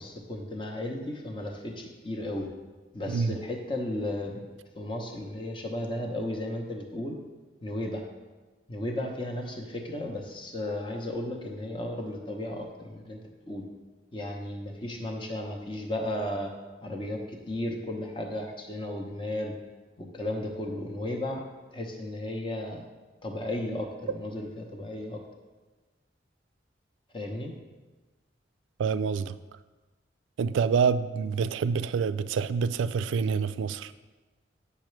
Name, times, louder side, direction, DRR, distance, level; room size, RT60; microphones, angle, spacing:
voice 1, 0.0-2.5 2.9-4.4 4.8-7.2 7.6-8.0 8.7-13.2 13.5-13.6 14.1-16.5 16.8-19.5 20.0-21.4 21.7-22.8 23.2-25.2 27.1-27.5, left 1 dB, 25° left, 1 dB, 0.8 m, -34 dB
voice 2, 28.8-29.4 30.4-33.9, right 6 dB, 90° right, 13 dB, 0.3 m, -27 dB
8.8 x 5.7 x 3.2 m, 1.2 s
head